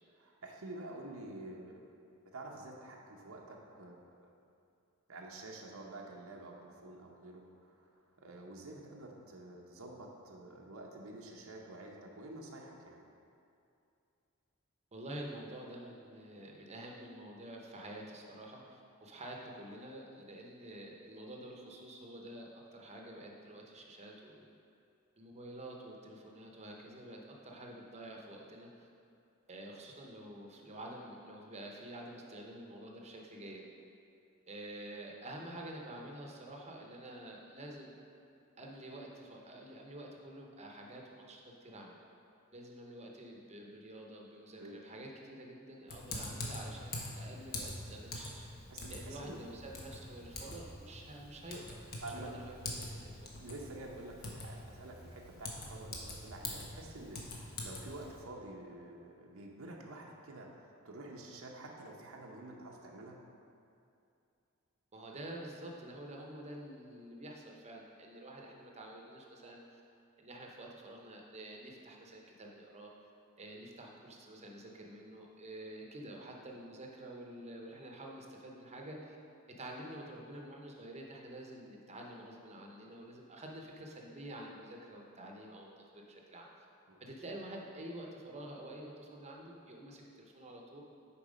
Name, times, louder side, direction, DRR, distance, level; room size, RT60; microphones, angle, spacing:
voice 1, 0.2-1.8 2.3-4.0 5.1-7.4 7.7-7.9 8.2-13.0 44.6-44.8 48.7-49.4 50.5-50.6 52.0-52.4 53.4-63.2 86.9-87.0, right 2 dB, 80° right, -1 dB, 0.9 m, -48 dB
voice 2, 14.9-24.5 25.2-28.9 29.5-33.6 34.5-37.9 38.6-42.0 42.5-48.5 48.9-51.8 52.1-53.2 64.9-69.8 70.2-72.9 73.4-79.2 79.6-86.5 87.0-90.8, right 1 dB, 30° right, 0 dB, 0.9 m, -48 dB
Typing, 45.9-58.2, left 2 dB, 45° left, 1.1 m, -45 dB
7.1 x 4.6 x 5.1 m, 2.6 s
head